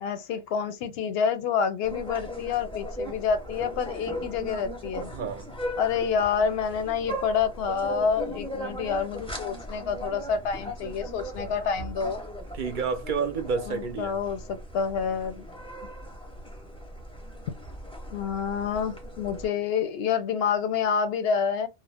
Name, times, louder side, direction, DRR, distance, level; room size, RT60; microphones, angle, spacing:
voice 1, 0.0-5.1 5.8-12.2 13.7-15.5 18.1-21.7, left 6 dB, 65° left, 0.7 m, -28 dB
sound 1, 1.8-19.5, equal, 5° left, 0.7 m, -38 dB
voice 2, 5.1-5.5 12.5-14.1, right 5 dB, 55° right, 0.6 m, -29 dB
2.4 x 2.1 x 3.3 m
omnidirectional pair, 1.2 m